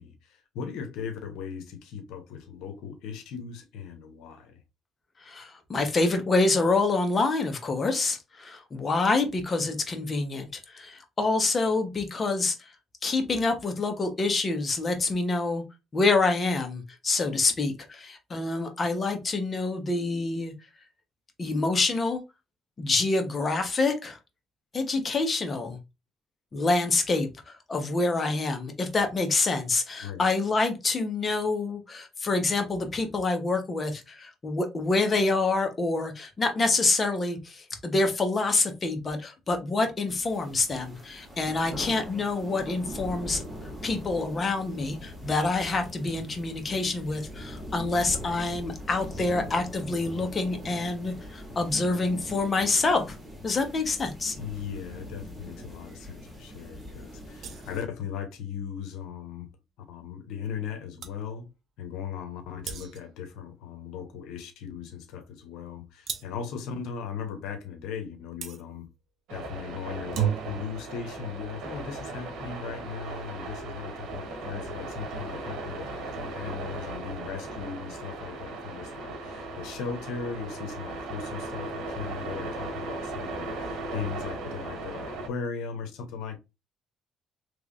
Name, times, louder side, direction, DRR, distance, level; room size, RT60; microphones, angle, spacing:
voice 1, 0.0-4.6 30.0-30.3 54.4-59.5 59.9-61.5 61.8-68.9 69.3-86.4, left 7 dB, 90° left, 0.8 m, -38 dB
voice 2, 5.2-12.7 13.0-15.6 15.9-20.5 21.4-22.2 22.8-24.2 24.7-25.8 26.5-43.4 43.8-53.2 53.4-54.3, left 3 dB, 30° left, 1.0 m, -27 dB
sound 1, 40.1-57.8, equal, 10° right, 1.4 m, -42 dB
sound 2, 57.4-57.9 60.6-60.7 61.0-61.2 62.6-63.2 66.1-66.5 68.4-68.6 69.9-70.7, right 10 dB, 65° right, 0.7 m, -33 dB
sound 3, 69.3-85.3, right 2 dB, 80° right, 1.1 m, -37 dB
3.3 x 3.0 x 2.5 m
cardioid pair, 100°, 0 cm